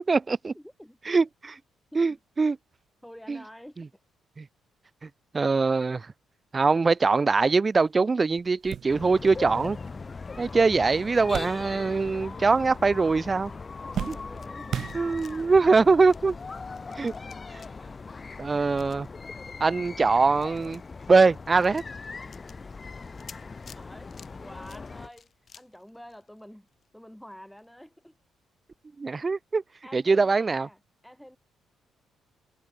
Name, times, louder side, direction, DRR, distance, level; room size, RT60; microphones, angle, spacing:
voice 1, 0.0-0.5 1.1-1.6 2.0-2.6 3.3-3.4 4.4-4.5 5.0-5.1 5.3-6.1 6.5-9.8 10.4-13.5 14.1-14.2 14.9-16.4 17.0-17.1 18.4-19.1 19.6-20.8 21.1-21.8 29.0-29.6 29.9-30.7, right 4 dB, 30° right, 0.4 m, -22 dB
voice 2, 0.5-1.0 1.9-2.2 3.0-4.0 13.8-14.9 23.7-25.3 25.5-28.2 29.8-31.4, equal, 5° left, 6.3 m, -48 dB
sound 1, 7.9-8.0 8.4-12.2 12.4-13.1 13.4-15.5 16.3-16.4 17.7-17.8, right 9 dB, 65° right, 1.4 m, -38 dB
sound 2, 8.9-25.1, left 4 dB, 30° left, 0.8 m, -40 dB
sound 3, 13.4-14.5 14.8-26.9 27.2-27.3 27.6-27.7, left 6 dB, 45° left, 3.2 m, -55 dB
cardioid pair, 90°, 0 cm